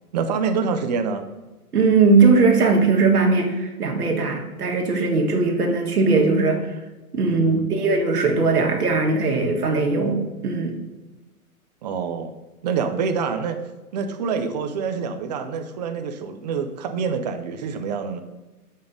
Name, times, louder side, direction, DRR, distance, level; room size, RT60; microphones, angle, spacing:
voice 1, 0.1-1.3 7.2-7.6 11.8-13.6 13.9-18.2, right 5 dB, 30° right, 7 dB, 0.5 m, -26 dB
voice 2, 1.7-6.7 7.1-10.7, right 4 dB, 85° right, 1 dB, 1.5 m, -19 dB
6.6 x 5.4 x 3.8 m, 1.1 s
hypercardioid pair, 135°, 45 cm